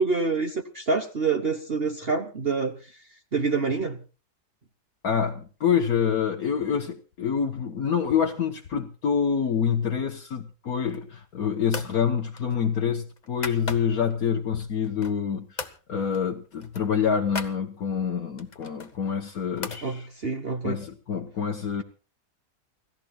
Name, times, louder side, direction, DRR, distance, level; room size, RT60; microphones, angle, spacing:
voice 1, 0.0-2.7 3.3-4.0 19.8-20.8, right 4 dB, 40° right, 1.2 m, -26 dB
voice 2, 5.0-20.1 20.6-21.8, left 7 dB, 60° left, 1.6 m, -27 dB
sound 1, 10.8-11.2 11.7-12.0 12.3-14.1 14.6-15.3 15.6-15.8 16.1-16.3 16.5-17.6 18.4-19.9, left 3 dB, 30° left, 1.2 m, -38 dB
29.0 x 15.5 x 2.4 m
omnidirectional pair, 1.8 m